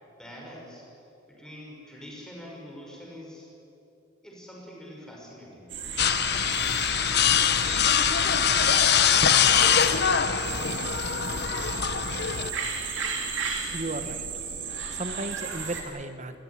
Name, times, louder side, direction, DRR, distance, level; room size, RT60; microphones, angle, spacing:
voice 1, 0.2-0.9 1.3-3.5 4.2-5.8, equal, 5° left, -2 dB, 5.9 m, -44 dB
sound 1, 5.7-15.8, right 6 dB, 65° right, 3.6 m, -34 dB
sound 2, 6.0-12.5, left 8 dB, 50° left, 1.0 m, -23 dB
voice 2, 13.7-14.3 14.9-16.4, right 2 dB, 35° right, 9 dB, 1.4 m, -34 dB
27.5 x 16.0 x 10.0 m, 2.9 s
head